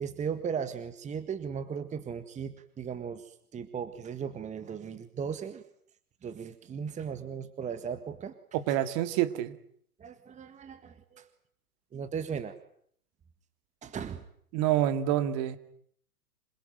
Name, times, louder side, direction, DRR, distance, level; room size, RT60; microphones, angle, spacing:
voice 1, 0.0-5.6 6.2-8.3 8.7-8.8 10.0-11.3 11.9-12.6 13.8-14.2, right 7 dB, 15° right, 11 dB, 1.7 m, -37 dB
voice 2, 8.5-9.6 14.5-15.6, right 12 dB, 35° right, 12 dB, 2.3 m, -27 dB
27.0 x 22.0 x 9.3 m, 0.65 s
figure-of-eight pair, 110°, 46 cm